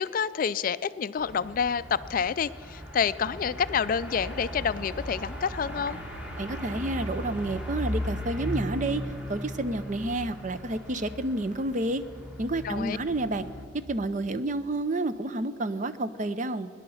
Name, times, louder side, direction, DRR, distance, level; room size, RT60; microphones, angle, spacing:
voice 1, 0.0-6.0 12.6-13.0, left 6 dB, 45° left, 15 dB, 0.3 m, -28 dB
sound 1, 1.2-13.7, equal, 5° right, 1.8 m, -37 dB
voice 2, 6.4-12.0 12.4-13.5 13.7-16.7, right 2 dB, 40° right, 12 dB, 0.6 m, -30 dB
18.5 x 10.5 x 7.1 m, 2.4 s
head